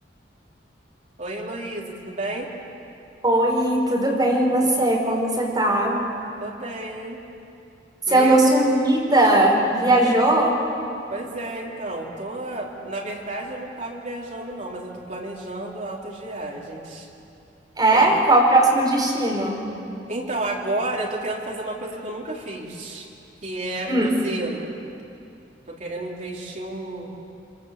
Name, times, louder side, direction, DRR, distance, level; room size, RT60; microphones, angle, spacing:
voice 1, 1.2-2.5 6.4-7.2 8.1-8.4 11.1-17.1 17.9-18.0 20.1-23.1 23.4-24.7 25.7-27.1, right 2 dB, 40° right, -2 dB, 3.8 m, -31 dB
voice 2, 3.2-6.1 8.1-10.6 17.8-19.6 23.9-24.1, right 1 dB, 20° right, -2 dB, 5.3 m, -19 dB
25.0 x 24.5 x 8.3 m, 2.6 s
head